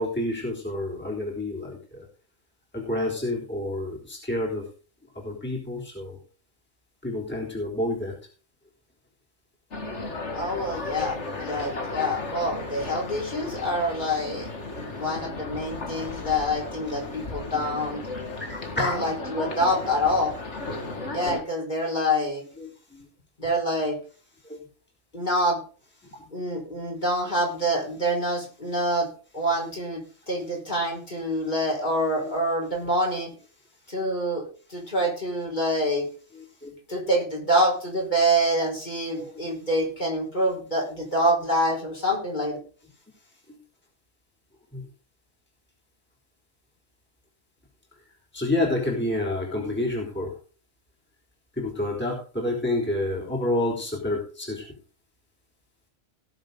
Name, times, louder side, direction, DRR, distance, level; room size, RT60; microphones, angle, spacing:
voice 1, 0.0-2.1 2.7-4.6 5.2-6.2 7.0-8.1 14.8-14.9 16.9-17.3 18.5-19.0 22.9-23.0 24.4-24.6 26.1-26.3 32.2-32.3 36.6-36.7 39.1-39.5 43.5-43.6 44.7-44.9 48.3-50.3 51.6-54.7, left 1 dB, 10° left, -3 dB, 3.8 m, -29 dB
sound 1, 9.7-21.4, left 3 dB, 60° left, 2.3 m, -35 dB
voice 2, 10.3-14.5 14.7-18.0 18.8-20.3 21.1-22.4 23.4-24.0 25.1-25.6 26.3-33.3 33.9-36.0 36.9-42.6, equal, 35° left, -1 dB, 4.8 m, -26 dB
18.5 x 7.2 x 3.9 m, 0.39 s
omnidirectional pair, 1.3 m